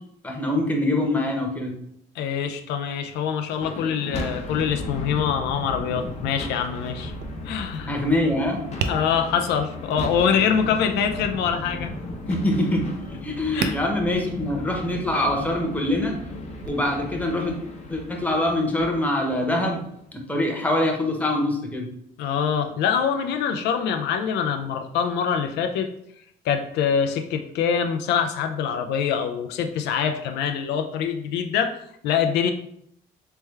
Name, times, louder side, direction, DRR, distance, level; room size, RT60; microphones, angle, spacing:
voice 1, 0.2-1.7 7.9-8.6 12.3-16.2 16.7-17.5 17.9-19.8 20.1-21.9, left 1 dB, 10° left, 1 dB, 0.8 m, -24 dB
voice 2, 2.2-7.1 7.4-8.0 8.8-11.9 13.5-13.8 22.2-25.9 26.4-32.5, left 7 dB, 80° left, 6 dB, 0.4 m, -24 dB
sound 1, 3.5-19.9, left 2 dB, 40° left, 0.7 m, -35 dB
Tap, 7.0-16.7, right 5 dB, 85° right, 0.4 m, -38 dB
3.4 x 3.2 x 3.2 m, 0.72 s
cardioid pair, 110°, 17 cm